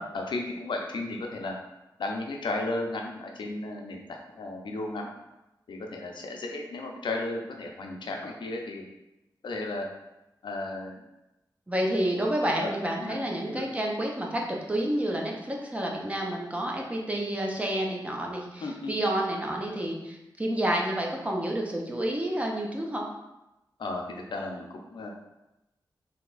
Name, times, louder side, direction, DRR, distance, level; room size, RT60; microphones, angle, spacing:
voice 1, 0.0-1.5 2.0-4.0 4.3-5.1 5.7-8.8 9.4-9.9 10.4-11.0 12.4-12.7 13.0-13.2 13.4-13.6 18.6-19.0 23.8-25.1, left 2 dB, 90° left, 1 dB, 0.6 m, -34 dB
voice 2, 11.7-23.1, right 1 dB, 15° right, -1 dB, 0.6 m, -29 dB
3.4 x 2.8 x 3.9 m, 0.95 s
wide cardioid pair, 120°, 8 cm